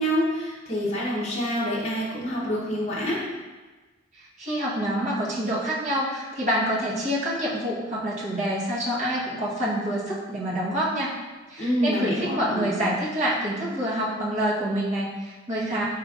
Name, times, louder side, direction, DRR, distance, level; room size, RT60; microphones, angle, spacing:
voice 1, 0.0-3.3 11.6-12.7, equal, 35° left, -6 dB, 0.8 m, -26 dB
voice 2, 4.2-11.1 11.5-15.8, equal, 40° right, -7 dB, 1.1 m, -27 dB
4.6 x 3.4 x 2.4 m, 1.2 s
head